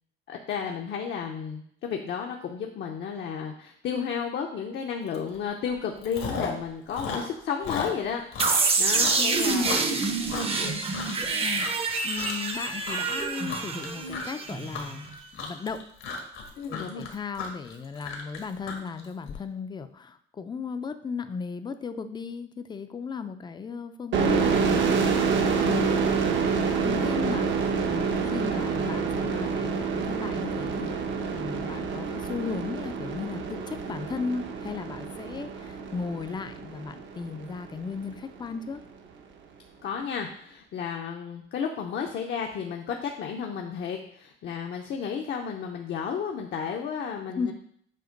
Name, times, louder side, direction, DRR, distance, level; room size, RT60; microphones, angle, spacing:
voice 1, 0.3-9.8 10.3-10.8 16.6-17.1 25.7-26.1 39.8-47.5, left 7 dB, 60° left, 2 dB, 0.7 m, -33 dB
Chewing mastication, 5.1-5.4 5.7-6.6 6.9-11.3 11.5-11.9 12.2-12.6 12.8-19.3, left 5 dB, 80° left, 1.4 m, -35 dB
sound 1, 8.4-15.2, right 4 dB, 30° right, 0.7 m, -27 dB
voice 2, 8.9-9.8 11.4-15.1 15.3-15.8 16.7-25.0 25.6-26.4 26.8-30.9 31.3-38.8 47.4-47.5, left 5 dB, 20° left, 9 dB, 0.4 m, -36 dB
sound 2, 24.1-37.6, right 5 dB, 70° right, 0.9 m, -27 dB
7.7 x 2.9 x 5.2 m, 0.67 s
cardioid pair, 145°, 21 cm